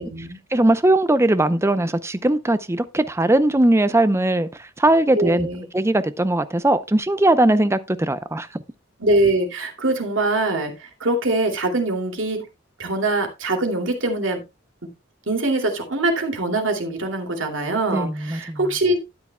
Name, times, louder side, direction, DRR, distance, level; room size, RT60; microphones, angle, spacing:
voice 1, 0.0-0.4 5.2-5.7 9.0-10.7 11.0-12.4 12.8-14.4 15.3-19.0, right 2 dB, 80° right, 2.6 m, -23 dB
voice 2, 0.5-4.5 4.8-5.5 5.7-8.6 17.9-18.7, right 1 dB, 15° right, 0.6 m, -19 dB
12.5 x 9.7 x 2.2 m
head